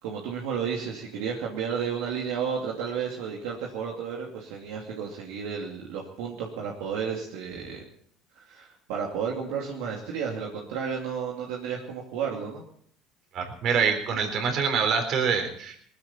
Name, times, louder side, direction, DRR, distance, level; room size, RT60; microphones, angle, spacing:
voice 1, 0.0-7.8 8.5-12.6, right 7 dB, 75° right, -2 dB, 2.6 m, -32 dB
voice 2, 13.3-15.8, right 6 dB, 55° right, 5 dB, 3.9 m, -25 dB
19.5 x 15.0 x 4.4 m, 0.62 s
hypercardioid pair, 75°, 0 cm